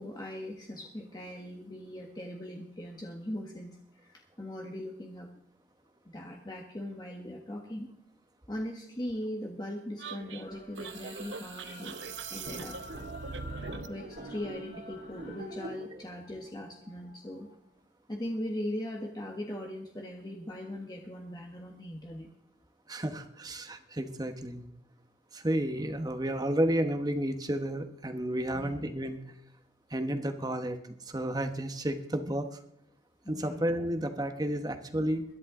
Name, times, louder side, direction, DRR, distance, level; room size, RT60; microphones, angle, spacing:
voice 1, 0.0-5.3 6.0-7.9 8.5-12.0 12.3-12.8 13.9-17.5 18.1-22.3 28.5-28.9 33.2-33.6, left 1 dB, 20° left, 1 dB, 1.3 m, -40 dB
sound 1, 10.0-14.0, right 5 dB, 80° right, 0.7 m, -42 dB
sound 2, 10.4-15.6, left 3 dB, 60° left, 5.1 m, -50 dB
sound 3, 12.4-17.6, right 1 dB, 60° right, 2.8 m, -45 dB
voice 2, 22.9-24.6 25.3-29.2 29.9-30.8 31.0-32.5 33.3-35.2, right 1 dB, 20° right, 7 dB, 1.1 m, -31 dB
21.5 x 11.0 x 3.7 m, 0.77 s
head